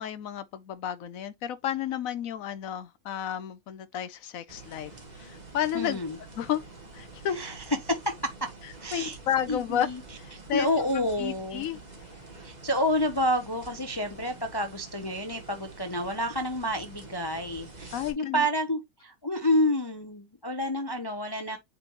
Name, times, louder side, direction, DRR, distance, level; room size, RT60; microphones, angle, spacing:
voice 1, 0.0-6.0 6.4-6.6 6.9-7.4 8.9-9.9 10.2-10.7 10.9-11.8 17.9-18.4, left 10 dB, 70° left, 1.1 m, -32 dB
sound 1, 4.5-18.1, right 3 dB, 30° right, 1.5 m, -47 dB
voice 2, 5.7-6.2 7.3-8.5 8.8-9.2 9.5-10.0 10.3-11.7 12.4-21.6, left 1 dB, 20° left, 0.7 m, -29 dB
8.8 x 3.9 x 3.0 m
omnidirectional pair, 1.5 m